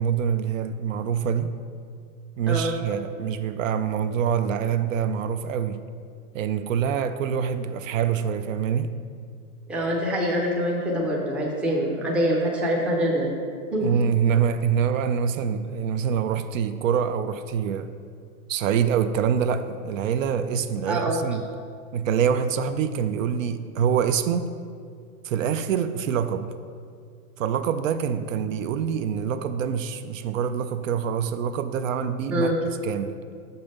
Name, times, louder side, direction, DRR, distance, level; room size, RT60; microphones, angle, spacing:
voice 1, 0.0-1.5 2.4-5.8 6.3-8.9 13.8-17.9 18.5-21.4 21.9-24.5 25.2-26.5 27.4-32.5 32.8-33.1, right 7 dB, 60° right, 10 dB, 0.5 m, -25 dB
voice 2, 9.7-13.4 13.7-13.9 20.9-21.2 32.3-32.6, equal, 5° right, -3 dB, 0.5 m, -25 dB
6.9 x 5.4 x 5.3 m, 2.2 s
hypercardioid pair, 140°, 46 cm